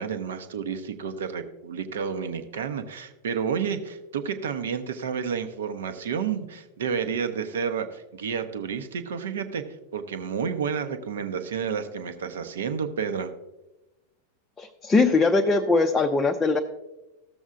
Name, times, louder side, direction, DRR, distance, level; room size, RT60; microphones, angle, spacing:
voice 1, 0.0-9.6 9.9-13.3, right 6 dB, 60° right, 8 dB, 0.7 m, -30 dB
voice 2, 14.6-16.6, left 3 dB, 15° left, 3 dB, 0.5 m, -21 dB
14.5 x 7.2 x 2.4 m, 1.0 s
figure-of-eight pair, 90°, 0 cm